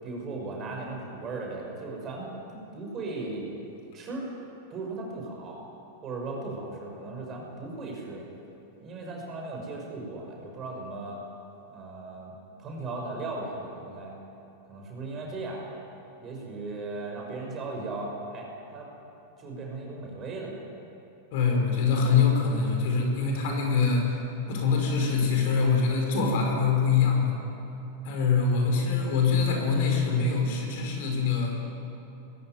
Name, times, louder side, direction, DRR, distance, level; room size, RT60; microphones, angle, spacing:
voice 1, 0.0-3.7 3.9-4.3 4.7-5.6 6.0-8.3 8.8-11.2 11.7-12.3 12.6-14.1 14.7-15.8 16.2-18.9 19.4-20.6, right 2 dB, 30° right, 0 dB, 6.1 m, -37 dB
voice 2, 21.3-24.2 24.5-27.3 28.0-31.7, left 5 dB, 50° left, 1 dB, 5.0 m, -24 dB
20.5 x 16.0 x 9.4 m, 2.9 s
figure-of-eight pair, 90°, 0 cm